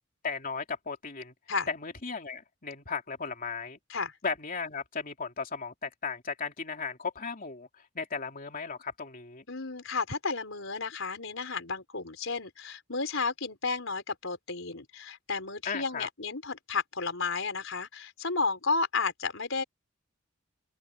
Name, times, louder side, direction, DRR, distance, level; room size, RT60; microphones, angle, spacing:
voice 1, 0.2-1.3 1.7-3.8 4.2-7.7 7.9-9.4 15.6-16.1, left 5 dB, 45° left, 2.9 m, -36 dB
voice 2, 9.5-19.6, left 4 dB, 70° left, 4.8 m, -32 dB
open air
head